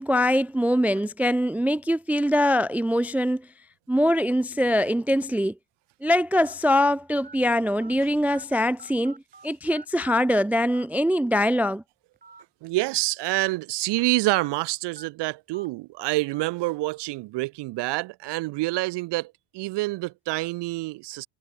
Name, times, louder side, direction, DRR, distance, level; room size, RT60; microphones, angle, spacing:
voice 1, 0.0-3.4 3.9-5.5 6.0-9.2 9.4-11.8, equal, 5° right, 0.3 m, -23 dB
sound 1, 4.3-4.5 5.2-5.3 6.4-6.5 7.2-7.4 7.8-7.9 8.3-9.5 9.7-10.4 10.7-10.9 12.1-12.4 12.8-12.9 14.3-14.5 15.0-15.1 15.5-15.7 16.3-16.4, right 4 dB, 20° right, 2.7 m, -47 dB
voice 2, 12.6-21.3, right 20 dB, 80° right, 1.7 m, -27 dB
supercardioid pair, 85°, 41 cm